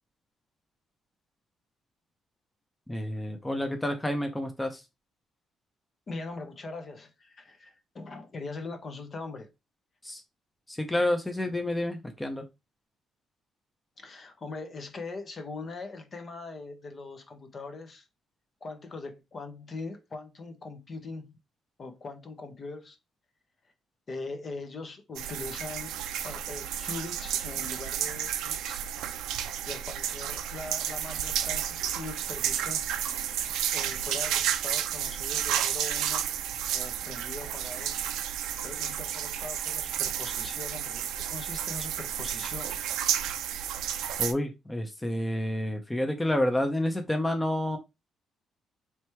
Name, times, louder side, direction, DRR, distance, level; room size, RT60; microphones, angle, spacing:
voice 1, 2.9-4.8 10.0-10.2 10.7-12.4 44.2-47.8, left 1 dB, 10° left, 0.7 m, -29 dB
voice 2, 6.1-9.5 14.0-18.1 18.6-21.4 21.8-23.0 24.1-26.0 26.2-28.8 29.7-32.9 33.7-36.3 36.7-38.0 38.6-42.8, left 3 dB, 40° left, 0.9 m, -41 dB
sound 1, 25.2-44.3, right 10 dB, 90° right, 0.4 m, -31 dB
3.4 x 2.9 x 4.5 m
cardioid pair, 90°, 0 cm